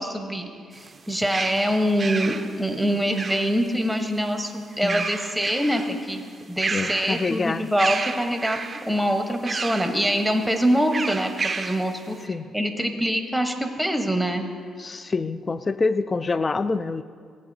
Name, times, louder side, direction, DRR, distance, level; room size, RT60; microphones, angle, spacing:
voice 1, 0.0-6.2 6.5-8.6 8.9-11.3 11.6-14.5, equal, ahead, 4 dB, 0.9 m, -24 dB
sound 1, 0.7-3.8 4.7-6.0 6.3-7.4 7.8-8.9 9.5-10.0 10.9-11.9, right 4 dB, 35° right, 0.5 m, -31 dB
voice 2, 6.7-7.7 12.3-12.5 14.8-17.0, left 3 dB, 30° left, 14 dB, 0.3 m, -26 dB
16.0 x 8.1 x 2.7 m, 2.1 s
cardioid pair, 90°, 0 cm